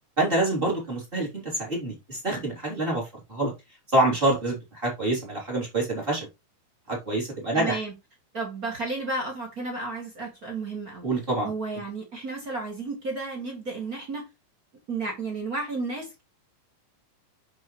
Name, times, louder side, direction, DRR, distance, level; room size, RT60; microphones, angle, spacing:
voice 1, 0.2-3.0 3.3-3.5 3.9-6.3 6.9-7.8 11.0-11.5, right 2 dB, 15° right, 2.8 m, -26 dB
voice 2, 7.5-7.9 8.3-11.0 11.4-14.2 14.9-16.2, right 3 dB, 35° right, 1.6 m, -32 dB
7.7 x 6.2 x 3.1 m
omnidirectional pair, 4.6 m